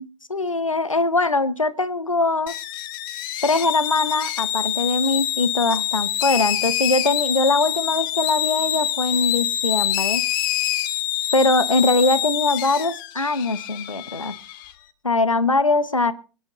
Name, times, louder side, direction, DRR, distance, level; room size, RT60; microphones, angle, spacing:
voice 1, 0.0-2.5 3.4-10.3 11.3-14.3 15.0-16.1, left 2 dB, 90° left, 16 dB, 0.8 m, -22 dB
sound 1, 2.5-14.7, left 12 dB, 40° left, 1.1 m, -26 dB
24.0 x 10.0 x 2.9 m, 0.36 s
figure-of-eight pair, 105°, 16 cm